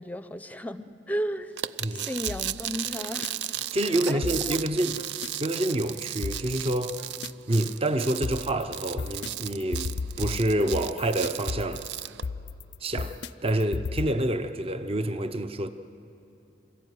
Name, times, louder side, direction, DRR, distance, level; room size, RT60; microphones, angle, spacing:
voice 1, 0.0-1.6 1.9-3.4 4.1-4.3, equal, 10° left, 0.6 m, -34 dB
sound 1, 1.6-12.2, right 12 dB, 75° right, 0.4 m, -35 dB
sound 2, 2.3-3.3 4.2-5.3 6.2-7.3 8.2-14.1, left 4 dB, 70° left, 0.5 m, -35 dB
voice 2, 3.7-7.0 7.5-9.9 10.2-11.8 12.8-15.7, right 1 dB, 35° right, 0.7 m, -27 dB
26.0 x 14.5 x 9.4 m
head